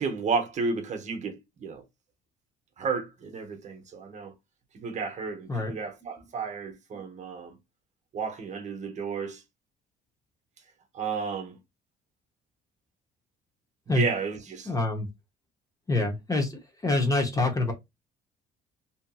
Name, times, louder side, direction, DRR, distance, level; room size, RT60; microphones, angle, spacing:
voice 1, 0.0-1.8 2.8-4.3 4.7-7.6 8.1-9.4 10.9-11.6 13.9-14.7, right 5 dB, 45° right, 0.8 m, -32 dB
voice 2, 14.6-15.1 15.9-17.7, left 2 dB, 20° left, 0.8 m, -26 dB
2.7 x 2.6 x 2.3 m
cardioid pair, 110°, 17 cm